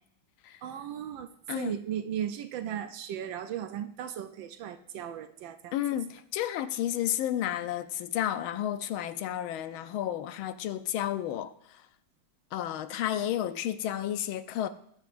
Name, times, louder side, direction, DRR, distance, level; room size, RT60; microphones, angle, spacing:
voice 1, 0.6-1.3 1.5-5.7, right 9 dB, 75° right, 1.3 m, -36 dB
voice 2, 5.7-11.8 12.5-14.7, left 11 dB, 80° left, 1.4 m, -32 dB
20.5 x 7.8 x 2.5 m
omnidirectional pair, 2.3 m